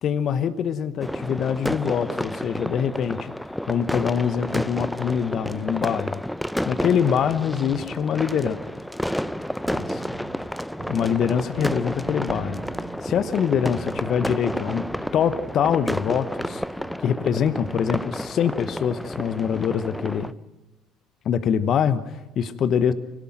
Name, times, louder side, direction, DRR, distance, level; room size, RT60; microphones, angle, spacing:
voice 1, 0.0-3.3 3.7-6.2 6.7-8.6 9.7-10.0 10.9-14.9 15.1-16.6 17.0-20.3 21.2-22.9, left 8 dB, 50° left, 13 dB, 1.0 m, -24 dB
sound 1, 1.0-20.3, equal, 5° left, 0.7 m, -31 dB
sound 2, 9.1-11.3 11.6-16.0 16.4-17.0, right 4 dB, 50° right, 3.6 m, -40 dB
24.5 x 17.5 x 7.8 m, 1.0 s
figure-of-eight pair, 55°, 0 cm